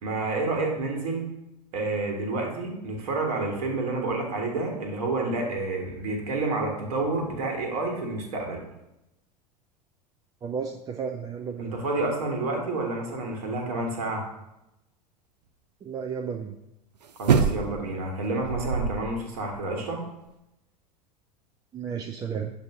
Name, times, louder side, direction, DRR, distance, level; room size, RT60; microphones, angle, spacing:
voice 1, 0.0-1.3 1.7-8.6 11.6-14.3 17.2-20.0, right 2 dB, 60° right, 1 dB, 1.4 m, -29 dB
voice 2, 10.4-11.7 15.8-16.5 21.7-22.5, right 6 dB, 20° right, 2 dB, 0.4 m, -33 dB
sound 1, 17.2-17.9 18.4-19.2 19.5-19.6, right 6 dB, 80° right, 0.4 m, -24 dB
6.7 x 2.7 x 5.4 m, 0.90 s
figure-of-eight pair, 80°, 21 cm